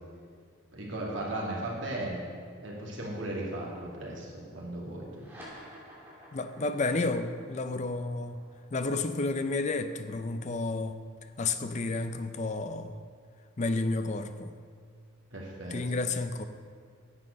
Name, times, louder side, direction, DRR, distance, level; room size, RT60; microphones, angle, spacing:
voice 1, 0.7-2.2 2.6-5.3 15.3-15.8, right 1 dB, 60° right, -3 dB, 2.4 m, -36 dB
sound 1, 5.1-11.9, equal, 10° right, 2.8 m, -53 dB
voice 2, 6.3-8.4 8.7-11.0 11.4-13.0 13.6-14.5 15.7-16.4, left 3 dB, 35° left, 9 dB, 0.5 m, -31 dB
9.7 x 7.5 x 6.4 m, 2.1 s
head